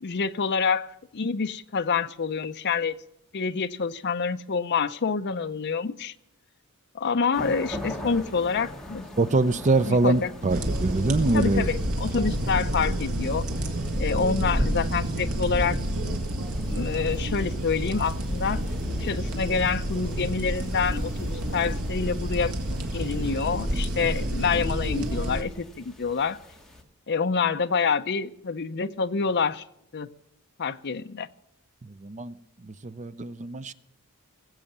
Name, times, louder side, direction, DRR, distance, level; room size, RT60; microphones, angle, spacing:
voice 1, 0.0-3.0 3.3-6.1 6.9-9.0 9.9-10.3 11.3-13.4 14.0-16.2 16.7-18.6 19.0-22.5 22.9-26.4 27.1-29.6 29.9-30.1 30.6-31.3, left 5 dB, 50° left, 0.6 m, -27 dB
sound 1, 7.3-26.8, left 1 dB, ahead, 2.1 m, -43 dB
voice 2, 9.2-11.7 31.8-32.3 32.6-33.7, right 2 dB, 35° right, 0.6 m, -24 dB
sound 2, 10.5-25.4, right 1 dB, 75° right, 2.0 m, -29 dB
20.5 x 7.8 x 7.3 m
head